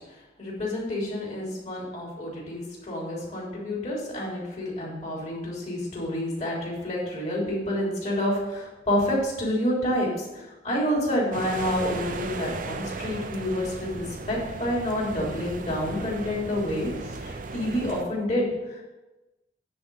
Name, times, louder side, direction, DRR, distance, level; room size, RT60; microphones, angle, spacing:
voice 1, 0.4-16.9 17.2-18.9, left 1 dB, 40° left, -4 dB, 3.5 m, -28 dB
sound 1, 11.3-18.0, right 3 dB, 50° right, 0.7 m, -36 dB
9.7 x 4.4 x 6.8 m, 1.1 s
head